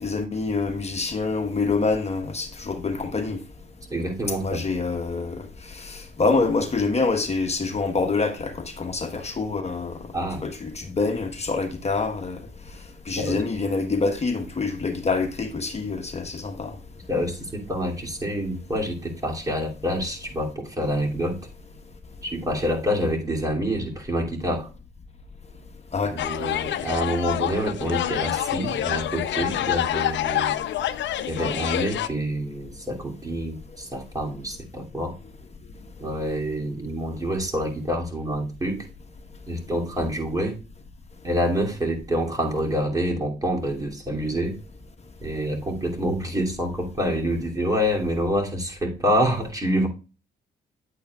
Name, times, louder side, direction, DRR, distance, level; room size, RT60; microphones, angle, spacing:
voice 1, 0.0-3.4 4.4-10.0 10.4-12.4 13.1-16.7 25.9-26.1, left 3 dB, 30° left, 1.2 m, -26 dB
voice 2, 3.9-4.6 10.1-10.5 13.2-13.4 17.1-21.4 22.2-24.7 26.0-30.6 31.3-35.1 36.0-38.9 39.5-40.6 41.2-44.6 45.2-49.9, equal, 15° right, 2.7 m, -27 dB
sound 1, 26.2-32.1, left 11 dB, 65° left, 0.7 m, -27 dB
9.9 x 8.4 x 2.3 m
cardioid pair, 90°, 20 cm